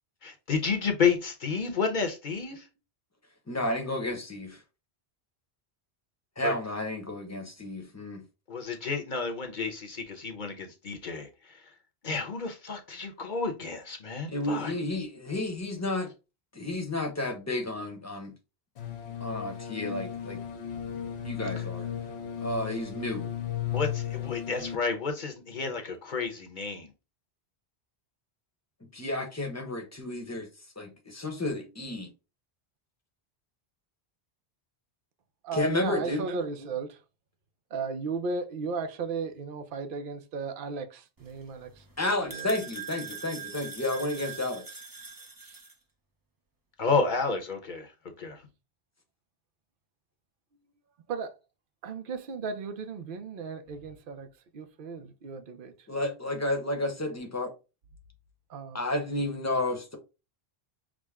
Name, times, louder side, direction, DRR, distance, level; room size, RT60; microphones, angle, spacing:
voice 1, 0.2-2.6 6.4-6.5 8.5-11.6 12.0-14.7 23.7-26.9 46.8-47.9 48.2-48.4, left 5 dB, 50° left, 1.0 m, -30 dB
voice 2, 3.5-4.6 6.4-8.2 14.3-16.1 16.5-18.3 19.2-20.4 21.2-21.9 22.4-23.3 28.8-30.5 30.8-32.1 35.5-36.3 42.0-44.8 55.9-57.5 58.7-60.0, left 2 dB, 15° left, 0.9 m, -32 dB
sound 1, 18.8-24.8, left 10 dB, 85° left, 1.1 m, -35 dB
voice 3, 35.4-37.0 37.7-41.8 42.3-42.5 45.4-45.6 51.1-51.3 51.8-54.3 54.5-55.7 58.5-58.8, right 4 dB, 60° right, 0.8 m, -35 dB
sound 2, 41.2-45.7, right 5 dB, 25° right, 0.6 m, -43 dB
6.2 x 2.1 x 3.5 m
omnidirectional pair, 1.1 m